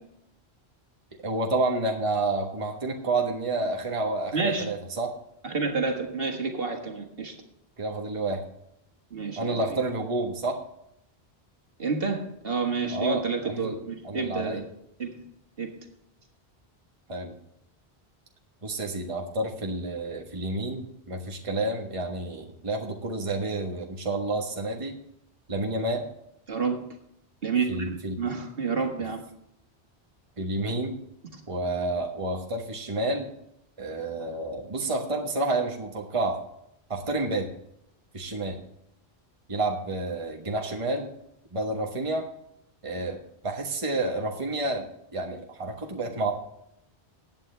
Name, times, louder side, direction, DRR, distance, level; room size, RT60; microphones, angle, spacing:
voice 1, 1.2-5.1 7.8-8.4 9.4-10.6 12.9-13.8 14.0-14.6 17.1-17.3 18.6-24.9 25.5-26.0 27.7-28.2 30.4-31.0 31.5-33.3 33.8-36.4 36.9-37.5 38.1-38.6 39.5-41.1 41.5-42.3 42.8-43.2 43.4-46.3, right 2 dB, 30° right, 2 dB, 1.3 m, -29 dB
voice 2, 4.3-4.7 5.4-7.3 9.1-9.8 11.8-14.6 15.0-15.2 15.6-15.7 26.5-26.8 27.4-29.2 31.3-31.4, right 4 dB, 60° right, 3 dB, 1.9 m, -29 dB
15.5 x 9.1 x 3.3 m, 0.77 s
omnidirectional pair, 1.1 m